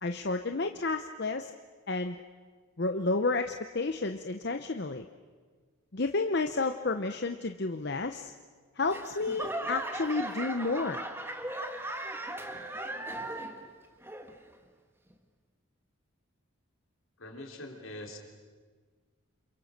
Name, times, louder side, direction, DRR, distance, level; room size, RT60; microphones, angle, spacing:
voice 1, 0.0-1.5 1.9-2.2 2.8-5.1 5.9-8.3 8.8-11.0, left 3 dB, 50° left, 7 dB, 0.8 m, -31 dB
Laughter / Clapping / Crowd, 8.9-13.7 14.0-14.5 15.1-15.2, right 1 dB, 10° right, 1.7 m, -37 dB
voice 2, 17.2-18.2, left 1 dB, 75° left, 2 dB, 4.0 m, -43 dB
28.5 x 28.0 x 6.7 m, 1.5 s
head